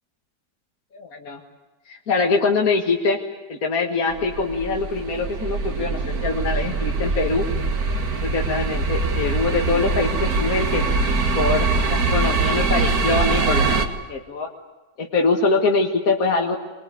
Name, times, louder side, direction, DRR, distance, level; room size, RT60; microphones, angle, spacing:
voice 1, 0.9-1.4 1.9-3.2 3.5-7.4 8.2-14.5 15.0-16.6, left 3 dB, 55° left, 1 dB, 2.2 m, -23 dB
sound 1, 4.1-13.9, right 3 dB, 60° right, 2.3 m, -23 dB
24.5 x 21.5 x 9.6 m, 1.1 s
omnidirectional pair, 1.9 m